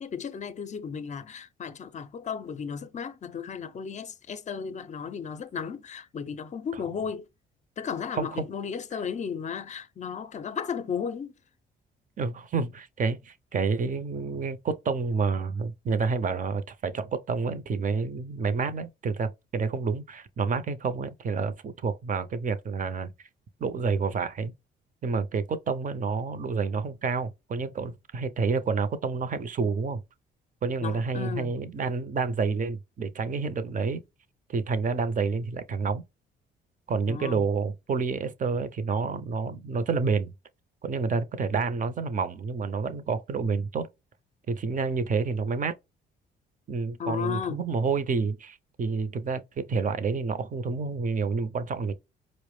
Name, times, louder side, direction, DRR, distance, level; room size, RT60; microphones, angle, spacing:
voice 1, 0.0-7.3 7.8-11.3 30.8-31.5 37.1-37.4 47.0-47.7, left 7 dB, 35° left, 0.5 m, -34 dB
voice 2, 8.1-8.5 12.2-23.1 23.6-24.5 25.0-30.0 30.6-34.0 34.5-36.0 36.9-40.3 40.8-43.9 44.5-45.7 46.7-51.9, right 4 dB, 40° right, 0.6 m, -29 dB
4.6 x 2.1 x 3.1 m
cardioid pair, 90°, 20 cm